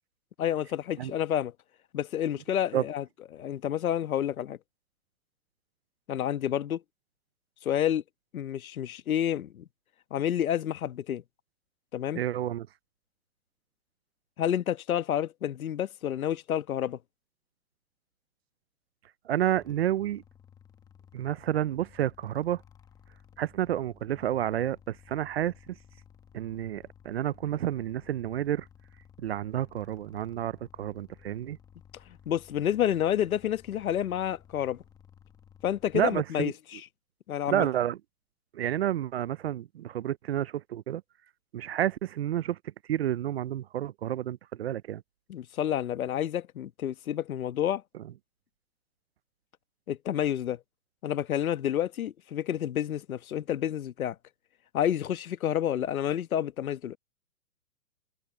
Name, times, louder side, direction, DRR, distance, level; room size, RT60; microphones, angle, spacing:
voice 1, 0.4-1.5 1.9-3.0 3.3-4.6 6.1-6.8 7.6-8.0 8.3-9.6 10.1-11.2 11.9-12.2 14.4-17.0 32.1-34.8 35.6-36.8 37.3-37.7 45.3-47.8 49.9-50.6 51.0-54.2 54.7-57.0, left 10 dB, 70° left, 1.3 m, -29 dB
voice 2, 12.2-12.7 19.3-20.2 21.1-22.6 23.4-25.5 26.3-28.7 29.2-31.6 35.9-36.5 37.5-38.0 38.5-41.0 41.5-42.6 42.9-45.0, right 11 dB, 45° right, 0.5 m, -30 dB
sound 1, 19.5-36.2, left 8 dB, 10° left, 1.0 m, -56 dB
hypercardioid pair, 155°, 44 cm